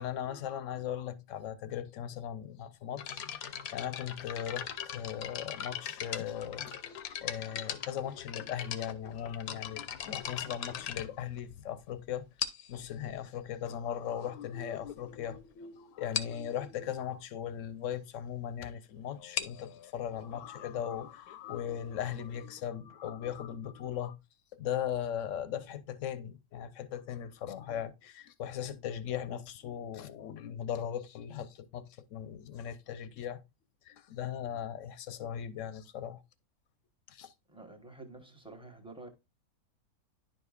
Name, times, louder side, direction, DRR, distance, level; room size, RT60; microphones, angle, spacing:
voice 1, 0.0-3.5 3.7-12.3 12.7-24.2 24.5-33.4 33.9-36.2 37.1-37.3, left 9 dB, 65° left, 1.0 m, -38 dB
sound 1, 3.0-11.8 12.4-12.8 13.7-13.8 14.4-14.5 14.7-14.9 15.3-15.4 15.6-15.7 16.1-16.4 19.1-22.6, left 9 dB, 85° left, 1.2 m, -40 dB
voice 2, 37.5-39.1, right 2 dB, 5° right, 0.9 m, -49 dB
10.5 x 5.1 x 2.4 m
omnidirectional pair, 1.5 m